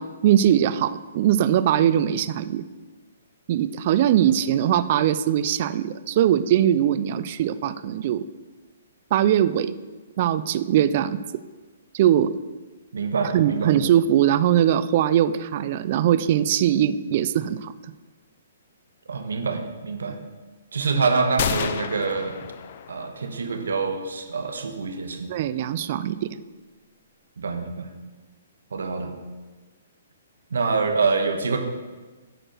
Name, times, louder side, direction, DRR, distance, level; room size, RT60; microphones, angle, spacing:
voice 1, 0.0-2.6 3.5-8.3 9.1-9.7 10.2-11.2 11.9-12.3 13.3-17.7 20.1-20.2 25.3-26.3, right 10 dB, 45° right, 14 dB, 0.4 m, -21 dB
voice 2, 12.9-13.8 19.1-20.2 20.7-22.4 22.9-25.3 27.4-27.9 28.7-29.1 30.5-31.6, right 4 dB, 80° right, 5 dB, 1.4 m, -25 dB
sound 1, 21.4-23.3, left 9 dB, 50° left, 0.5 m, -30 dB
8.9 x 5.0 x 5.9 m, 1.3 s
hypercardioid pair, 140°, 0 cm